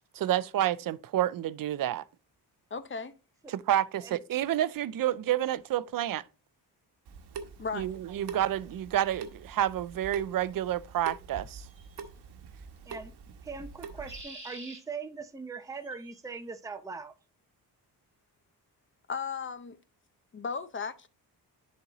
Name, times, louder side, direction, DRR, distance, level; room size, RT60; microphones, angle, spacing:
voice 1, 0.1-2.0 3.5-6.2 7.7-11.6, right 12 dB, 55° right, 0.5 m, -29 dB
voice 2, 2.7-3.1 7.6-8.0 19.1-19.8 20.3-21.1, left 5 dB, 30° left, 0.7 m, -36 dB
Water tap faucet / Sink (filling or washing) / Drip, 7.0-14.2, right 5 dB, 75° right, 1.1 m, -45 dB
sound 1, 11.7-12.1 13.8-14.8 15.7-16.2, right 2 dB, 30° right, 2.9 m, -47 dB
voice 3, 13.4-17.1, right 4 dB, 10° right, 0.7 m, -41 dB
10.5 x 4.2 x 3.0 m
cardioid pair, 95°, 40 cm